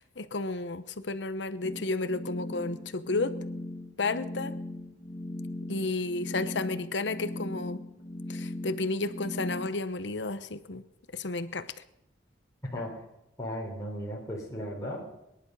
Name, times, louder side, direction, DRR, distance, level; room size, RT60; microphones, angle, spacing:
voice 1, 0.0-3.3 4.0-4.5 5.7-7.8 8.3-10.8 11.1-11.7, left 3 dB, 80° left, 12 dB, 0.9 m, -32 dB
sound 1, 1.6-9.7, left 1 dB, 40° left, 1.7 m, -38 dB
voice 2, 13.4-15.1, equal, 20° left, -3 dB, 4.0 m, -36 dB
23.5 x 11.0 x 5.5 m, 0.88 s
head